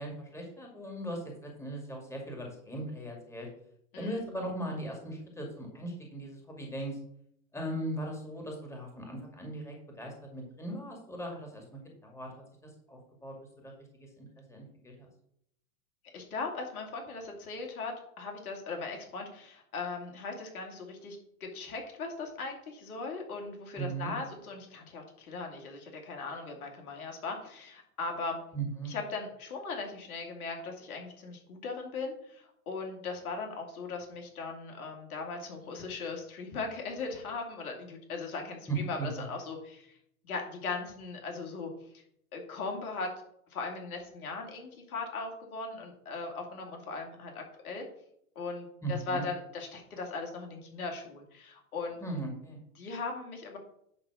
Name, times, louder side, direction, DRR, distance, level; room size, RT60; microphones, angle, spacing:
voice 1, 0.0-3.5 3.9-7.0 7.5-13.4 13.6-15.1 23.7-24.1 28.5-28.9 38.7-39.1 48.8-49.2 52.0-52.6, right 2 dB, 5° left, 1 dB, 2.3 m, -38 dB
voice 2, 3.9-4.2 16.1-28.4 28.9-39.9 40.2-41.7 42.3-43.1 43.5-47.8 48.4-52.0 52.8-53.6, left 4 dB, 75° left, 2 dB, 2.5 m, -39 dB
10.5 x 3.8 x 6.1 m, 0.72 s
hypercardioid pair, 115°, 44 cm